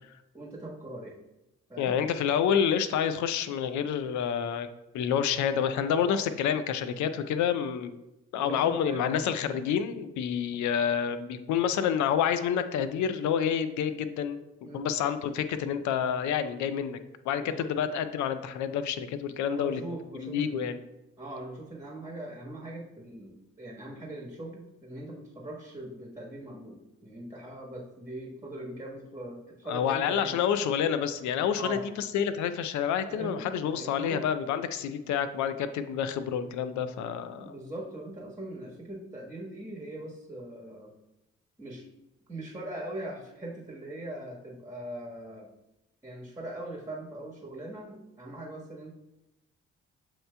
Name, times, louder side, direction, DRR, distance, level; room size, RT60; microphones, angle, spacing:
voice 1, 0.3-1.2 1.7-2.0 8.4-9.4 14.6-14.9 17.3-17.7 19.5-20.7 21.2-30.4 31.5-31.8 33.1-34.3 37.4-40.9 41.6-41.8 42.3-45.5 46.0-48.9, right 1 dB, 10° right, -3 dB, 1.3 m, -41 dB
voice 2, 1.8-7.9 8.3-14.4 14.7-17.0 17.3-19.8 20.2-20.8 29.7-37.5, left 8 dB, 70° left, 11 dB, 0.5 m, -28 dB
7.6 x 2.9 x 2.2 m, 0.92 s
supercardioid pair, 55°, 30 cm